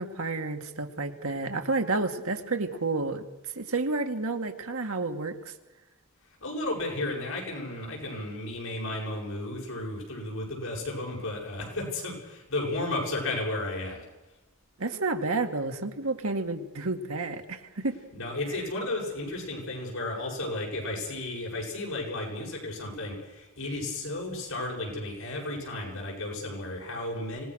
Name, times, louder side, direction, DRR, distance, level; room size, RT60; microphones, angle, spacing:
voice 1, 0.0-3.2 3.6-5.5 14.8-18.0, right 3 dB, 85° right, 5 dB, 2.1 m, -30 dB
voice 2, 6.4-14.0 18.1-27.4, left 2 dB, 75° left, -1 dB, 7.6 m, -33 dB
25.5 x 19.0 x 6.5 m, 1.1 s
head